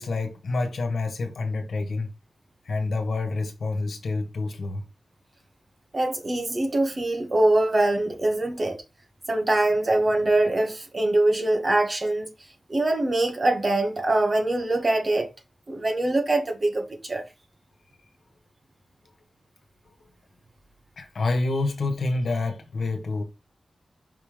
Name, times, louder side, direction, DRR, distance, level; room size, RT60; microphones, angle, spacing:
voice 1, 0.0-2.1 2.6-4.8 21.0-23.2, left 3 dB, 70° left, 1.4 m, -28 dB
voice 2, 5.9-8.8 9.3-12.3 12.7-15.3 15.7-17.2, right 2 dB, 30° right, 1.5 m, -23 dB
5.6 x 3.8 x 5.0 m
wide cardioid pair, 170°, 0 cm